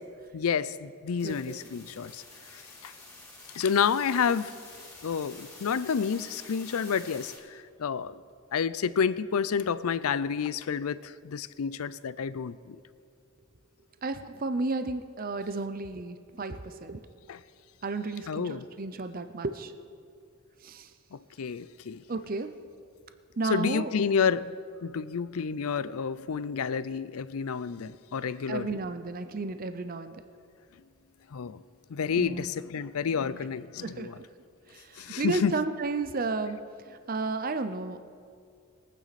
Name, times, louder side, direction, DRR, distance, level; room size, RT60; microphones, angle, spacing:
voice 1, 0.3-2.2 2.5-2.9 3.5-4.6 5.0-8.2 8.5-12.8 17.3-17.4 18.3-18.7 21.1-22.0 23.5-24.6 24.8-28.7 31.3-31.6 31.9-34.2 35.0-35.5, left 6 dB, 80° left, 16 dB, 0.5 m, -30 dB
sound 1, 1.2-7.4, left 2 dB, 15° left, 2.9 m, -48 dB
voice 2, 1.2-1.6 14.0-17.1 17.8-19.7 20.6-20.9 22.1-22.5 23.4-23.9 28.5-30.2 32.2-32.5 33.8-34.3 34.7-36.6 36.8-38.0, right 3 dB, 40° right, 9 dB, 0.6 m, -33 dB
22.5 x 9.2 x 4.2 m, 2.2 s
head